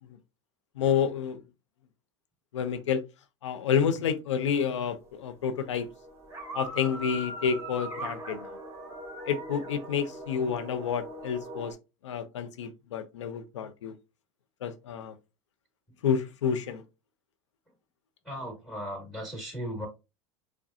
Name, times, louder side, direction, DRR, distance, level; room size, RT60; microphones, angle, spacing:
voice 1, 0.8-1.4 2.5-3.0 3.4-5.9 6.5-8.5 9.3-11.7 12.0-13.9 14.6-15.1 16.0-16.8, left 7 dB, 85° left, 0.6 m, -29 dB
sound 1, 4.4-5.3 5.5-11.7, right 1 dB, 15° right, 1.7 m, -41 dB
voice 2, 18.2-19.9, equal, ahead, 2.2 m, -37 dB
4.9 x 2.2 x 2.6 m
hypercardioid pair, 90°, 15 cm